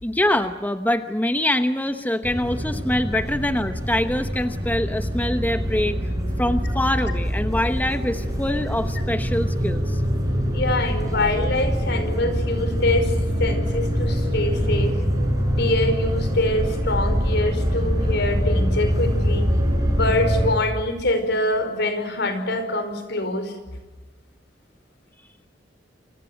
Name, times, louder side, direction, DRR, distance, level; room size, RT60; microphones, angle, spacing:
voice 1, 0.0-6.1 6.4-10.0 11.1-11.3, left 1 dB, 10° left, 9 dB, 1.0 m, -24 dB
sound 1, 2.2-20.5, equal, 20° right, 7.8 m, -24 dB
voice 2, 10.5-13.1 13.4-15.0 15.5-19.5 19.9-23.5, left 1 dB, 65° left, 10 dB, 5.2 m, -24 dB
28.5 x 26.0 x 8.0 m, 1.2 s
head